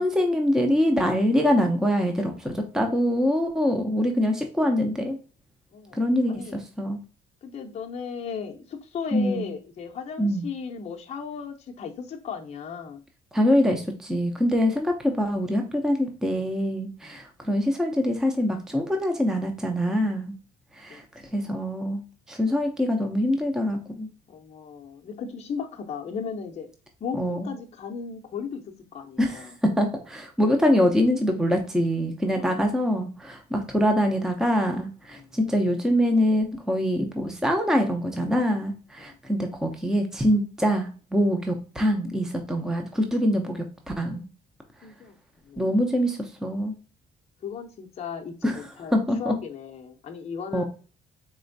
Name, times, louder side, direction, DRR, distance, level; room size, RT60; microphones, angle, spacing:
voice 1, 0.0-5.2 5.9-7.0 9.1-9.5 10.2-10.5 13.3-20.3 20.7-21.0 21.3-24.1 27.1-27.5 29.2-44.2 45.6-46.8 48.4-49.3 50.5-50.7, equal, 5° right, 4 dB, 0.6 m, -24 dB
voice 2, 5.7-6.6 7.4-13.0 17.0-17.2 20.9-21.0 24.3-26.7 27.0-28.6 28.9-29.5 32.3-32.7 35.1-35.4 39.0-39.2 44.8-45.2 45.5-45.8 47.4-50.7, left 6 dB, 40° left, 1 dB, 0.6 m, -36 dB
4.3 x 3.0 x 2.6 m, 0.36 s
cardioid pair, 110°, 17 cm